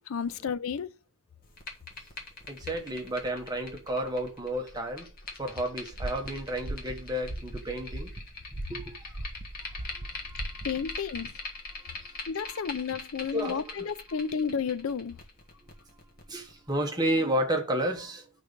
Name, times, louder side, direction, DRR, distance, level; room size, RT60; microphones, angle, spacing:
voice 1, 0.1-0.9 10.6-11.4 12.3-15.2, left 6 dB, 70° left, 0.5 m, -32 dB
sound 1, 1.4-16.7, left 3 dB, 40° left, 1.5 m, -43 dB
voice 2, 2.5-5.1 5.4-8.1 8.7-9.1 9.7-10.6 11.7-12.2 12.4-12.7 13.3-13.7 16.3-18.3, right 1 dB, 20° right, 1.1 m, -32 dB
sound 2, 5.9-11.0, right 1 dB, 40° right, 0.9 m, -39 dB
10.0 x 4.1 x 5.2 m
head